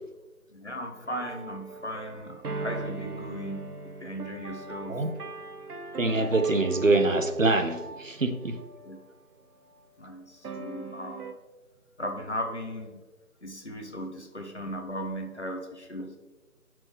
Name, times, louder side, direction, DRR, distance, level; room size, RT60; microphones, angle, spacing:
voice 1, 0.5-3.7 4.0-5.0 8.8-9.0 10.0-11.3 12.0-13.0 13.4-16.2, equal, 50° left, 4 dB, 1.0 m, -37 dB
sound 1, 1.0-9.0 9.6-9.8 10.4-11.3, right 3 dB, 90° right, 0.9 m, -40 dB
voice 2, 6.0-8.5, right 2 dB, 60° right, 8 dB, 0.8 m, -24 dB
7.8 x 6.0 x 3.5 m, 1.1 s
figure-of-eight pair, 175°, 44 cm